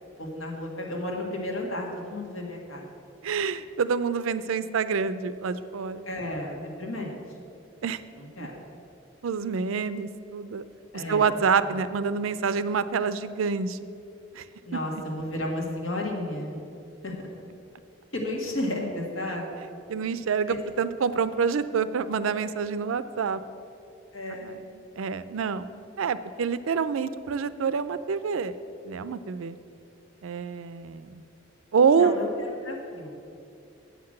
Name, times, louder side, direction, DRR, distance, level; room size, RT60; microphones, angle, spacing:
voice 1, 0.2-2.8 6.1-7.2 8.2-8.6 10.9-11.3 11.7-11.8 14.7-16.6 17.0-17.1 18.1-19.5 20.5-20.6 24.1-24.6 31.9-32.3 32.6-33.2, left 1 dB, 90° left, -1 dB, 1.7 m, -33 dB
voice 2, 3.2-6.0 7.8-8.0 8.4-8.5 9.2-10.7 10.9-13.8 14.3-14.4 14.7-14.8 19.9-23.4 24.4-24.6 25.0-25.7 26.0-28.5 28.9-29.6 30.2-31.2 31.7-32.2, right 6 dB, 90° right, 14 dB, 0.4 m, -27 dB
8.1 x 5.9 x 7.6 m, 2.6 s
head